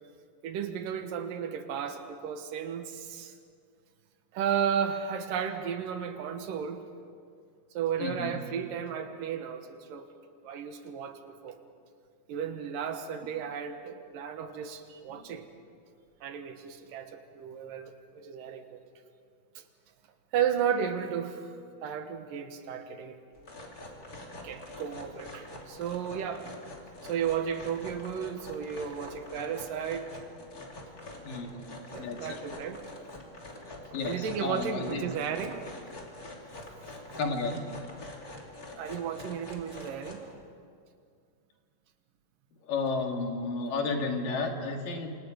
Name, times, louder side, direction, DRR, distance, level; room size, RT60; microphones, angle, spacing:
voice 1, 0.4-3.3 4.3-6.8 7.7-10.1 10.4-11.6 12.3-15.4 16.2-18.8 19.6-19.7 20.3-21.5 21.8-23.2 24.4-26.5 27.0-30.1 31.9-32.8 34.1-35.7 38.8-40.2, right 8 dB, 80° right, 7 dB, 3.0 m, -34 dB
voice 2, 8.0-8.4 15.1-15.4 31.2-31.7 32.0-32.4 33.9-35.1 37.2-37.6 42.6-45.2, left 3 dB, 75° left, 3 dB, 3.6 m, -32 dB
sound 1, 23.3-40.3, left 2 dB, 25° left, 3.2 m, -45 dB
27.0 x 27.0 x 5.2 m, 2.2 s
omnidirectional pair, 4.0 m